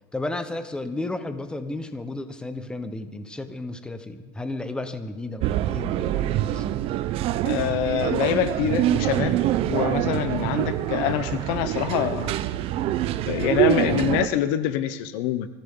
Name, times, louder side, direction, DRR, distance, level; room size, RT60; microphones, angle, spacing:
voice 1, 0.1-6.7, left 2 dB, 5° left, 9 dB, 1.1 m, -33 dB
sound 1, 5.4-14.3, right 13 dB, 45° right, 0.8 m, -25 dB
voice 2, 7.4-9.4 9.6-12.4 13.3-15.5, left 11 dB, 65° left, 12 dB, 1.0 m, -25 dB
23.5 x 14.5 x 3.9 m, 1.2 s
supercardioid pair, 130°, 13 cm